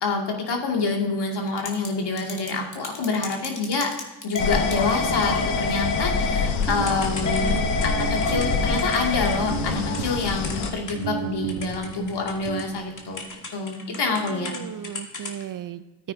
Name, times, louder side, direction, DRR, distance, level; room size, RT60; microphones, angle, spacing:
voice 1, 0.0-3.9 4.2-7.6 7.8-13.2 13.5-14.5, left 4 dB, 55° left, 1 dB, 2.4 m, -27 dB
Typing / Telephone, 1.5-1.9 2.2-11.2 11.5-14.6 14.8-15.4, left 2 dB, 40° left, 2.3 m, -29 dB
sound 1, 4.4-10.7, left 6 dB, 80° left, 1.1 m, -27 dB
sound 2, 6.7-13.3, right 12 dB, 70° right, 0.8 m, -35 dB
voice 2, 7.2-7.7 14.2-16.1, right 10 dB, 45° right, 13 dB, 0.6 m, -36 dB
14.0 x 8.9 x 2.8 m, 1.1 s
hypercardioid pair, 45°, 47 cm